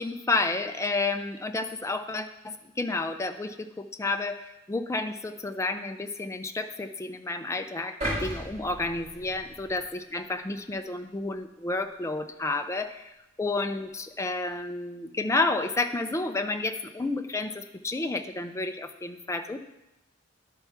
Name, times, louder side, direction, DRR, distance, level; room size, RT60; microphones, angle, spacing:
voice 1, 0.0-19.6, left 3 dB, 15° left, 8 dB, 0.4 m, -31 dB
sound 1, 8.0-10.2 10.6-10.8, equal, 30° right, 3.7 m, -35 dB
11.0 x 4.6 x 5.7 m, 0.94 s
head